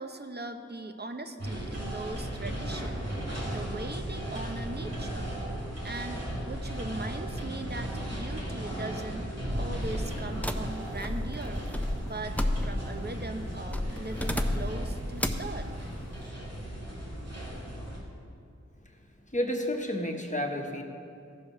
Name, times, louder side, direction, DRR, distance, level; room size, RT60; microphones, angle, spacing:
voice 1, 0.0-5.3 5.8-9.3 9.6-15.7, right 2 dB, 35° right, 6 dB, 0.8 m, -40 dB
sound 1, 1.4-18.0, right 1 dB, 60° right, 2.3 m, -36 dB
sound 2, 10.4-13.0 13.7-14.8 15.2-15.5, left 1 dB, 5° left, 0.6 m, -31 dB
voice 2, 19.3-20.8, left 1 dB, 25° left, 2 dB, 1.2 m, -30 dB
15.0 x 5.1 x 5.8 m, 2.5 s
wide cardioid pair, 45°, 29 cm